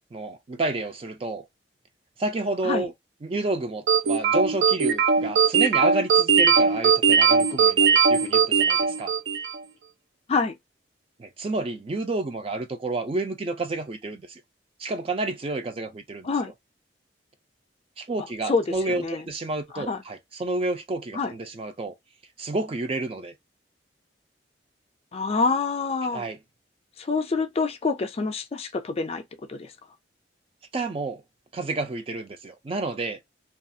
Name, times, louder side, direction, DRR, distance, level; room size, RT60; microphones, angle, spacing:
voice 1, 0.1-1.4 2.2-2.9 3.2-9.1 11.2-14.4 14.8-16.3 18.0-21.9 22.4-23.3 26.1-26.4 30.7-31.2 31.5-33.2, right 2 dB, 30° right, 0.4 m, -30 dB
sound 1, 3.9-9.6, right 6 dB, 85° right, 0.6 m, -19 dB
voice 2, 18.4-19.2 19.7-20.0 21.1-21.3 25.1-26.2 27.0-29.2 29.5-29.7, left 4 dB, 35° left, 0.4 m, -26 dB
2.4 x 2.3 x 2.6 m
head